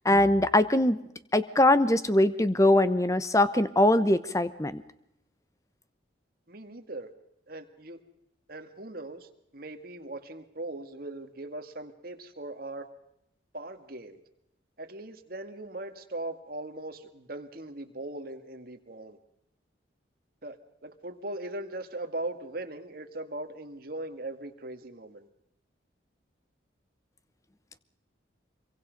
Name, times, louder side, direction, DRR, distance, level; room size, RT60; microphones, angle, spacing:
voice 1, 0.0-1.0 1.3-4.8, left 1 dB, 15° left, 13 dB, 0.9 m, -22 dB
voice 2, 6.5-7.1 7.5-8.0 8.5-12.9 13.5-14.2 14.8-19.2 20.4-20.6 20.8-25.3, right 2 dB, 50° right, 6 dB, 1.9 m, -39 dB
25.5 x 23.5 x 5.3 m, 0.80 s
head